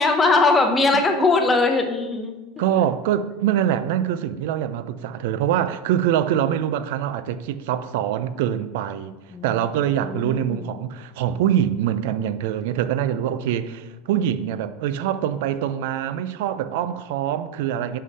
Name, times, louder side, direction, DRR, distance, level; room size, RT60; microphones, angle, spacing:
voice 1, 0.0-2.4 9.3-9.4 10.0-10.6, left 3 dB, 20° left, 0.8 m, -20 dB
voice 2, 2.6-9.1 9.4-18.0, right 10 dB, 75° right, 0.4 m, -24 dB
5.6 x 5.0 x 4.1 m
supercardioid pair, 135°, 0 cm